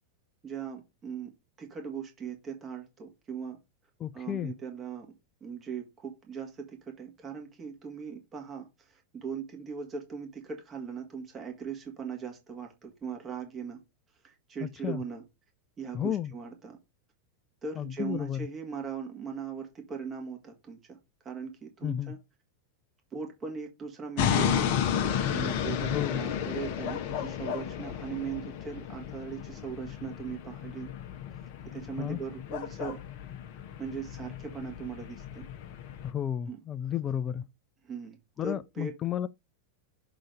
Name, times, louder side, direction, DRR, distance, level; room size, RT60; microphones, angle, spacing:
voice 1, 0.4-1.3 1.6-3.6 4.1-5.1 5.4-13.8 14.2-15.2 15.8-16.8 17.6-21.0 21.2-22.2 23.1-30.9 31.7-33.0 33.8-35.5 36.5-36.6 37.8-38.9, right 6 dB, 25° right, 1.9 m, -39 dB
voice 2, 4.0-4.5 14.6-15.0 15.9-16.3 17.8-18.5 21.8-22.1 25.9-26.2 32.0-32.2 36.0-37.4 38.4-39.3, left 10 dB, 25° left, 0.4 m, -32 dB
sound 1, 24.2-36.1, left 9 dB, 45° left, 0.9 m, -33 dB
6.8 x 3.8 x 4.8 m
figure-of-eight pair, 90°, 0 cm